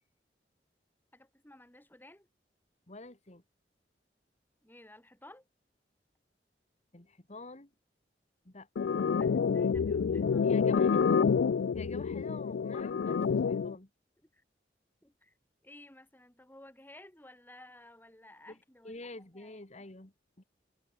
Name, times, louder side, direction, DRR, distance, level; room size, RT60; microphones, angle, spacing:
voice 1, 1.1-2.3 4.6-5.4 9.1-10.9 14.3-14.4 15.0-15.3 15.6-19.0 19.3-19.6, left 1 dB, 10° left, 2.7 m, -55 dB
voice 2, 2.9-3.4 6.9-7.7 8.4-8.7 10.4-11.2 11.7-13.9 18.5-18.6 18.8-20.4, left 2 dB, 40° left, 2.2 m, -47 dB
sound 1, 8.8-13.8, left 6 dB, 90° left, 0.4 m, -28 dB
head